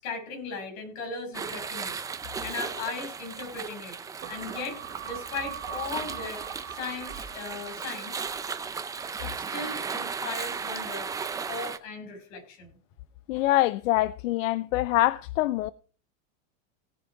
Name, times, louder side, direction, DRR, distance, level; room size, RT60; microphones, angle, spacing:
voice 1, 0.0-2.0 2.4-4.0 4.3-8.2 9.2-11.1 11.5-12.8, left 4 dB, 45° left, 6.2 m, -37 dB
sound 1, 1.3-11.8, right 5 dB, 10° right, 0.5 m, -36 dB
sound 2, 4.2-8.9 9.3-9.4, right 9 dB, 30° right, 1.9 m, -42 dB
voice 2, 13.3-15.7, left 16 dB, 75° left, 0.7 m, -24 dB
18.0 x 7.2 x 4.7 m
supercardioid pair, 155°, 40 cm